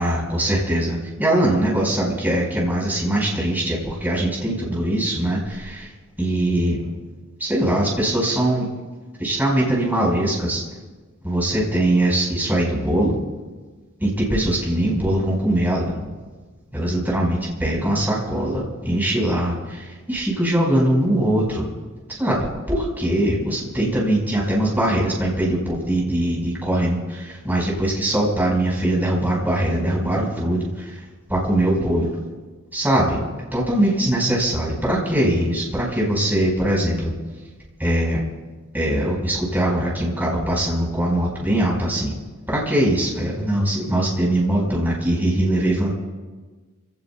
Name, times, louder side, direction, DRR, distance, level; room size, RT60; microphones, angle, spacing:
voice 1, 0.0-5.9 6.2-6.9 7.4-8.7 9.2-10.6 11.2-13.2 14.0-16.0 16.7-21.7 22.1-31.0 31.3-32.2 32.7-33.2 33.5-37.1 37.8-38.2 38.7-42.2 42.5-45.9, right 1 dB, 10° right, -3 dB, 4.8 m, -21 dB
28.5 x 17.5 x 2.3 m, 1.3 s
head